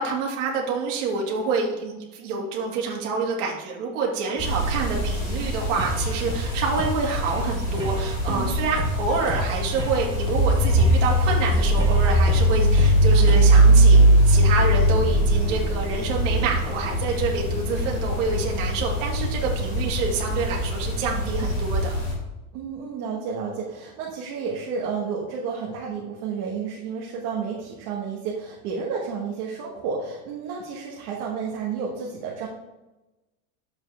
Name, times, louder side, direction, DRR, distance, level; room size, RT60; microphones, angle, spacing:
voice 1, 0.0-22.0, right 4 dB, 55° right, -2 dB, 2.2 m, -27 dB
sound 1, 4.4-22.1, right 1 dB, 20° left, 2.4 m, -21 dB
sound 2, 5.8-13.8, right 2 dB, 10° right, 0.7 m, -33 dB
voice 2, 22.5-32.5, right 5 dB, 35° right, -3 dB, 1.3 m, -31 dB
10.0 x 7.2 x 3.4 m, 1.0 s
supercardioid pair, 180°, 44 cm